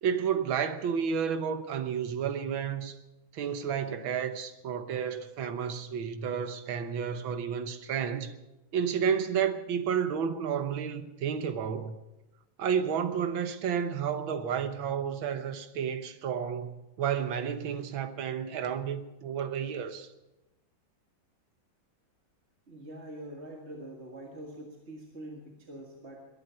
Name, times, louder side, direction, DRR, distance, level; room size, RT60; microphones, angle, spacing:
voice 1, 0.0-3.0 3.3-8.3 8.7-12.0 12.6-20.1, right 7 dB, 75° right, 1.8 m, -31 dB
voice 2, 22.7-26.2, right 1 dB, 35° right, 1.9 m, -44 dB
22.0 x 11.0 x 5.7 m
omnidirectional pair, 2.2 m